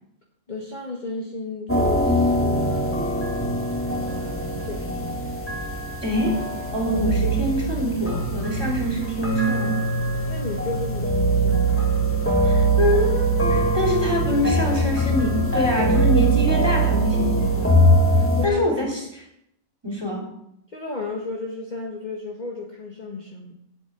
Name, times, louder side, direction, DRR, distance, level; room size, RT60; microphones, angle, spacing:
voice 1, 0.5-3.5 3.9-5.2 10.3-11.9 18.4-18.9 20.7-23.5, left 2 dB, 30° left, -2 dB, 1.7 m, -34 dB
sound 1, 1.7-18.5, right 1 dB, 10° left, 1.8 m, -22 dB
voice 2, 6.0-6.4 6.7-9.8 12.4-17.9 18.4-19.3 19.8-20.3, left 1 dB, 15° right, -1 dB, 3.5 m, -25 dB
8.5 x 8.1 x 8.8 m, 0.76 s
omnidirectional pair, 1.5 m